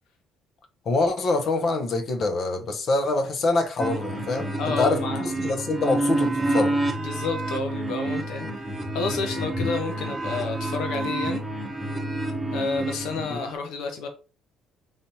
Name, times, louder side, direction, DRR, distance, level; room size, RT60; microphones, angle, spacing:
voice 1, 0.9-6.8 13.3-13.4, left 3 dB, 50° left, 0.8 m, -25 dB
sound 1, 3.8-13.5, right 1 dB, ahead, 1.1 m, -28 dB
voice 2, 4.6-5.3 7.0-11.4 12.5-14.1, left 4 dB, 85° left, 0.8 m, -30 dB
5.5 x 3.3 x 2.8 m
cardioid pair, 125°, 0 cm